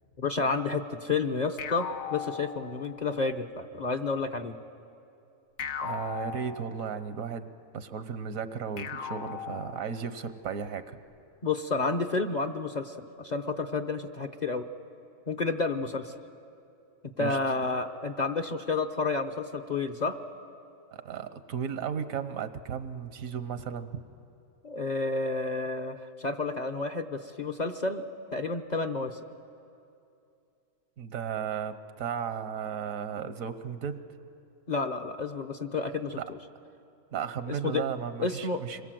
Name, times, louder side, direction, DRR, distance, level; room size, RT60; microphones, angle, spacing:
voice 1, 0.2-4.6 11.4-14.6 15.3-16.1 17.2-20.2 24.6-28.1 28.3-29.2 34.7-36.2 37.5-37.8 38.2-38.6, left 3 dB, 40° left, 5 dB, 0.8 m, -30 dB
sound 1, 1.6-3.2 5.6-7.2 8.8-10.3, left 7 dB, 75° left, 1.2 m, -38 dB
voice 2, 5.8-11.0 17.2-17.4 21.0-24.0 31.0-34.0 36.2-36.3 37.1-38.8, right 7 dB, 80° right, 11 dB, 1.4 m, -35 dB
26.5 x 22.0 x 7.7 m, 2.7 s
omnidirectional pair, 1.4 m